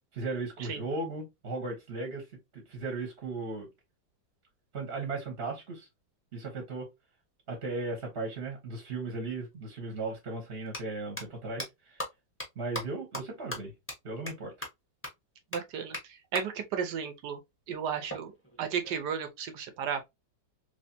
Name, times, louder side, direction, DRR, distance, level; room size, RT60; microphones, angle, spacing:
voice 1, 0.1-2.3 2.5-3.7 4.7-5.9 6.3-6.9 7.5-12.0 12.6-13.7 14.0-14.5, right 3 dB, 40° right, 1.0 m, -36 dB
sound 1, 9.4-9.5 10.6-10.8 11.2-11.3 11.6-11.7 12.0-12.1 12.4-12.5 12.7-12.8 13.1-13.2 13.5-13.6 13.9-14.0 14.3-14.4 14.6-14.7 15.0-15.1 15.5-15.6 15.9-16.0 16.3-16.4 18.1-19.1, equal, 10° left, 0.8 m, -37 dB
voice 2, 15.5-17.4 17.7-18.3 18.6-20.1, right 7 dB, 70° right, 1.2 m, -34 dB
3.2 x 3.1 x 2.6 m
omnidirectional pair, 2.1 m